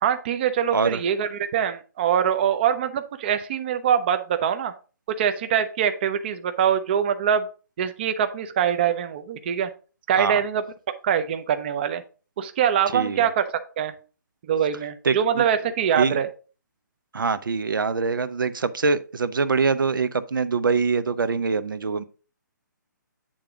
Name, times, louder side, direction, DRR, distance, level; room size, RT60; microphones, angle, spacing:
voice 1, 0.0-4.7 5.1-7.5 7.8-9.7 10.1-10.6 11.0-12.0 12.4-13.5 13.8-13.9 14.4-16.3, right 8 dB, 30° right, 0.6 m, -23 dB
voice 2, 12.9-13.3 15.0-15.4 16.0-16.2 17.1-22.1, right 4 dB, 85° right, 0.7 m, -24 dB
8.7 x 3.8 x 4.7 m
hypercardioid pair, 160°, 11 cm